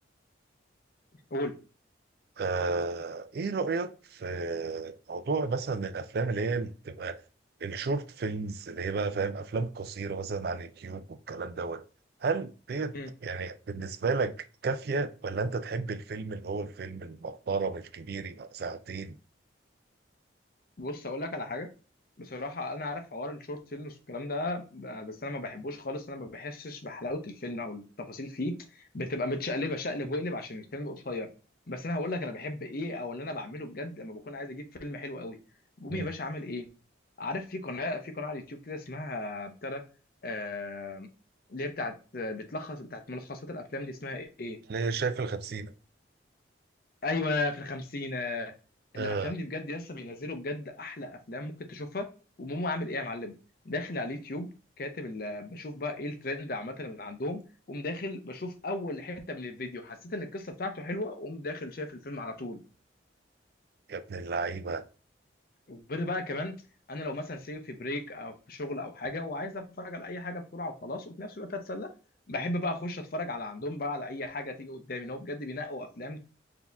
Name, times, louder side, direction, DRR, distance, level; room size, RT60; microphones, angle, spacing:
voice 1, 2.4-7.2 7.6-11.8 12.2-13.0 13.2-19.2 35.9-36.1 44.7-45.7 48.9-49.3 63.9-64.8, right 4 dB, 55° right, 0.4 m, -32 dB
voice 2, 20.8-21.7 22.2-31.3 31.7-35.4 35.8-36.7 37.2-39.8 40.2-41.1 41.5-44.6 47.0-48.5 48.9-52.1 52.4-53.3 53.6-57.4 57.7-62.6 65.7-66.6 66.9-71.9 72.3-76.2, left 2 dB, 50° left, 0.6 m, -35 dB
4.2 x 2.8 x 3.4 m
head